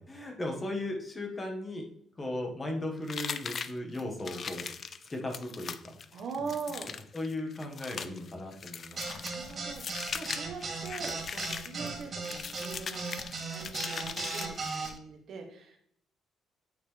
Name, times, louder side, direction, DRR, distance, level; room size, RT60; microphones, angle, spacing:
voice 1, 0.0-1.8 2.2-4.7 5.1-6.0 7.1-9.3 11.8-11.9, left 1 dB, 25° left, 2 dB, 1.7 m, -37 dB
sound 1, 3.1-15.0, left 6 dB, 50° left, 0.4 m, -40 dB
voice 2, 6.1-6.9 9.2-13.2 13.5-15.8, right 5 dB, 65° right, 2 dB, 1.4 m, -42 dB
sound 2, 9.0-14.9, right 4 dB, 45° right, 2.3 m, -36 dB
8.6 x 4.4 x 3.4 m, 0.67 s
cardioid pair, 90°, 0 cm